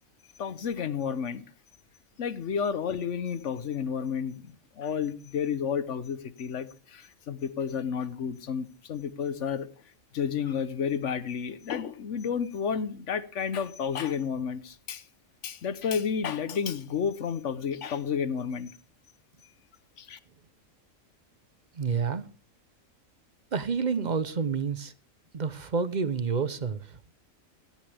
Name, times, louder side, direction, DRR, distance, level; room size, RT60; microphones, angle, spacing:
voice 1, 0.4-1.4 2.2-9.7 10.1-15.0 15.4-18.7 20.0-20.2, left 7 dB, 60° left, 1.2 m, -31 dB
voice 2, 21.7-22.2 23.5-24.9 25.3-27.0, right 5 dB, 40° right, 0.8 m, -29 dB
17.0 x 13.5 x 3.4 m
omnidirectional pair, 1.4 m